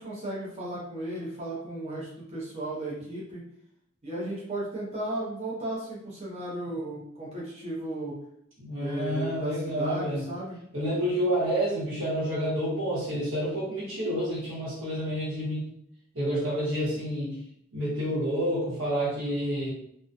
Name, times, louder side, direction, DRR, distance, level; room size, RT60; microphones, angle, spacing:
voice 1, 0.0-3.4 4.0-8.2 8.8-10.6, right 1 dB, 30° right, -6 dB, 0.6 m, -35 dB
voice 2, 8.6-10.2 10.7-15.7 16.1-17.4 17.7-19.7, equal, 85° right, -6 dB, 1.1 m, -29 dB
2.3 x 2.2 x 2.6 m, 0.71 s
head